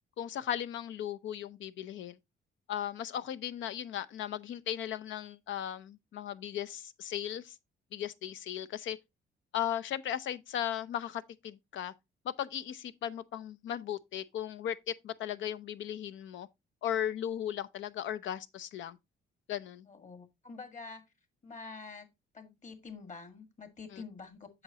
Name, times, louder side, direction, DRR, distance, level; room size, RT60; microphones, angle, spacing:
voice 1, 0.2-2.2 2.7-7.6 7.9-9.0 9.5-11.9 12.2-16.5 16.8-19.0 19.5-19.9 23.9-24.0, left 10 dB, 75° left, 0.7 m, -37 dB
voice 2, 19.9-21.0 21.4-22.1 22.3-24.6, left 4 dB, 40° left, 1.8 m, -47 dB
7.9 x 6.5 x 2.8 m
cardioid pair, 90°, 20 cm